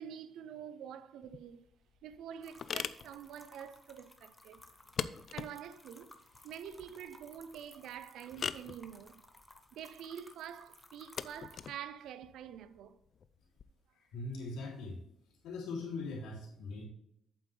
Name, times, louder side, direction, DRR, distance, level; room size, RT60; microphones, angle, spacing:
voice 1, 0.0-1.7 2.0-4.6 5.3-6.2 6.4-9.2 9.7-13.0, right 9 dB, 80° right, 0.5 m, -47 dB
sound 1, 1.2-13.6, left 7 dB, 50° left, 0.4 m, -44 dB
sound 2, 2.4-11.7, left 1 dB, 10° left, 1.1 m, -59 dB
voice 2, 13.9-16.8, left 3 dB, 90° left, 3.2 m, -41 dB
8.4 x 7.7 x 3.4 m
cardioid pair, 90°, 0 cm